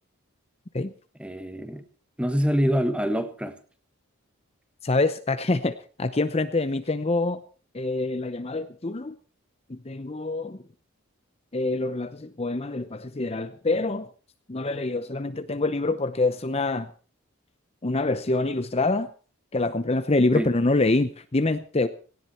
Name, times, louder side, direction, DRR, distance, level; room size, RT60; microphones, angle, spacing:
voice 1, 1.2-1.9 2.2-3.5 20.3-20.5, equal, 5° right, 1.5 m, -25 dB
voice 2, 4.8-7.4 7.7-9.1 9.7-10.6 11.5-14.1 14.5-16.9 17.8-19.1 19.5-21.9, left 2 dB, 30° left, 0.7 m, -25 dB
18.0 x 16.5 x 4.4 m
head